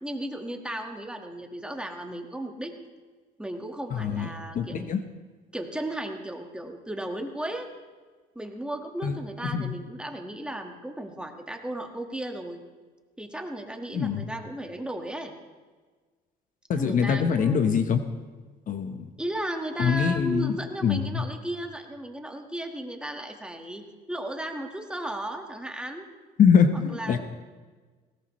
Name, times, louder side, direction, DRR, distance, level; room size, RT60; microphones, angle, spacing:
voice 1, 0.0-2.7 3.4-5.0 5.5-7.7 8.4-12.6 13.2-15.3 16.8-17.7 19.2-26.1 26.7-27.2, right 1 dB, 5° right, 3 dB, 1.7 m, -35 dB
voice 2, 3.9-4.3 4.5-5.0 9.0-9.2 9.5-9.8 13.9-14.3 16.7-18.0 18.7-19.1 19.8-20.5 20.8-21.3 26.4-27.2, left 7 dB, 50° left, 8 dB, 1.1 m, -23 dB
20.0 x 17.5 x 3.2 m, 1.4 s
cardioid pair, 110°, 17 cm